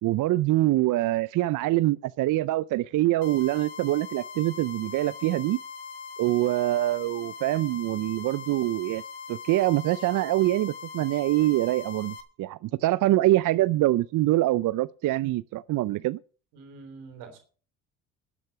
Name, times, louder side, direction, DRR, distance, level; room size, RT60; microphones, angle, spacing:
voice 1, 0.0-5.6 6.2-9.0 9.3-16.2, right 16 dB, 55° right, 0.5 m, -24 dB
sound 1, 3.2-12.2, left 5 dB, 80° left, 1.7 m, -41 dB
voice 2, 16.5-17.4, right 4 dB, 85° right, 3.6 m, -45 dB
12.0 x 8.5 x 5.8 m
supercardioid pair, 75°, 39 cm